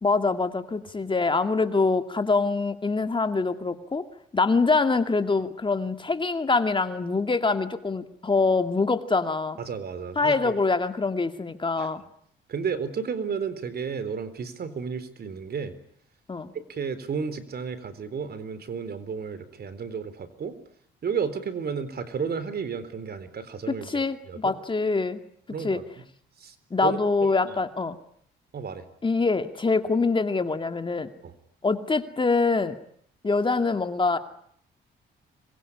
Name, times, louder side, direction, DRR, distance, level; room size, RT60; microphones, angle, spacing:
voice 1, 0.0-4.0 4.3-9.6 10.2-12.0 16.3-16.5 23.7-25.2 25.6-25.8 26.7-28.0 29.0-31.1 31.6-32.8 33.2-34.2, left 3 dB, 25° left, 8 dB, 2.3 m, -24 dB
voice 2, 9.6-10.6 11.7-11.9 12.5-15.7 16.5-20.5 21.0-24.5 25.5-25.9 26.4-26.5 26.8-27.0 27.5-27.6 28.5-28.9 31.2-31.3, right 6 dB, 55° right, 14 dB, 4.0 m, -32 dB
26.0 x 22.5 x 9.8 m, 0.66 s
cardioid pair, 90°, 20 cm